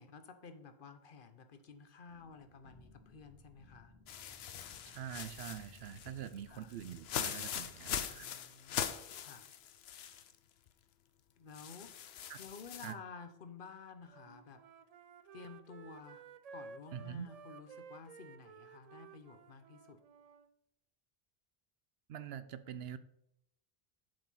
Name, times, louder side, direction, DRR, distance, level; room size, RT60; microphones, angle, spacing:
voice 1, 0.0-3.9 6.5-6.8 8.1-9.5 11.4-14.6 15.3-20.0, left 5 dB, 60° left, 9 dB, 0.9 m, -53 dB
sound 1, 2.1-7.4, left 2 dB, 20° right, 1.1 m, -62 dB
sound 2, 4.1-10.3 10.7-10.8 11.5-12.9, left 9 dB, 85° left, 0.9 m, -42 dB
voice 2, 4.9-8.3 12.3-12.4 12.8-13.0 16.9-17.3 22.1-23.0, right 9 dB, 75° right, 13 dB, 0.8 m, -45 dB
Wind instrument woodwind instrument, 14.1-20.5, right 5 dB, 55° right, 0.5 m, -54 dB
7.4 x 5.1 x 5.5 m, 0.77 s
omnidirectional pair, 1.0 m